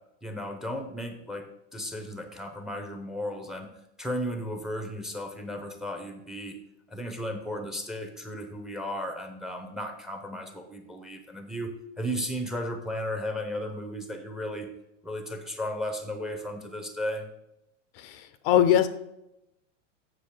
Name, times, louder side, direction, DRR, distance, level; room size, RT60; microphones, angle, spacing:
voice 1, 0.2-1.5 1.7-3.7 4.0-6.6 6.9-11.7 12.0-14.7 15.0-17.3, equal, ahead, 7 dB, 0.7 m, -34 dB
voice 2, 18.0-18.9, left 10 dB, 50° left, 12 dB, 0.6 m, -22 dB
7.5 x 6.4 x 4.8 m, 0.85 s
supercardioid pair, 140°, 38 cm